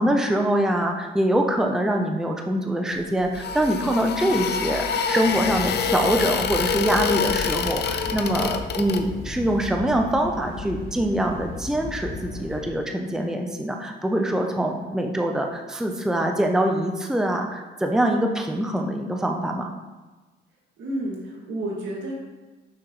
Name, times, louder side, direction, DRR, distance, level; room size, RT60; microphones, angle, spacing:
voice 1, 0.0-19.7, right 1 dB, 5° right, 3 dB, 0.6 m, -24 dB
sound 1, 3.0-9.4, left 6 dB, 55° left, 0.5 m, -27 dB
sound 2, 5.2-12.6, left 2 dB, 30° left, 1.5 m, -37 dB
voice 2, 20.8-22.2, right 1 dB, 70° right, -3 dB, 2.0 m, -31 dB
6.3 x 5.8 x 3.1 m, 1.2 s
cardioid pair, 90°, 20 cm